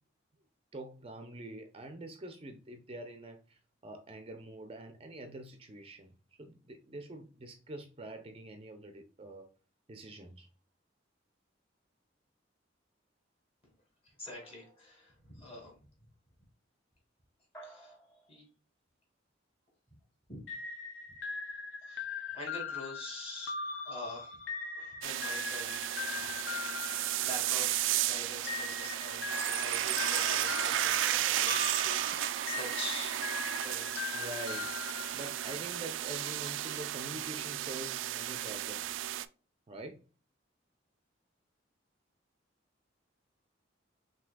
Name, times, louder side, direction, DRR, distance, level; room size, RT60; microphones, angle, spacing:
voice 1, 0.7-6.1 6.4-9.5 9.9-10.5 34.1-34.7 35.1-39.1 39.7-40.0, right 2 dB, 30° right, 0.5 m, -45 dB
voice 2, 14.2-15.7 17.6-18.0 18.3-18.4 20.3-20.4 21.9-24.4 24.8-26.3 27.2-33.2 33.6-33.9, left 2 dB, 30° left, 2.2 m, -45 dB
sound 1, 14.3-15.3 17.5-18.4, right 1 dB, 15° left, 1.1 m, -54 dB
sound 2, 20.5-27.9 28.5-35.7, left 5 dB, 80° left, 0.6 m, -40 dB
sound 3, 25.0-39.3, right 13 dB, 80° right, 0.3 m, -33 dB
5.8 x 2.8 x 2.2 m
head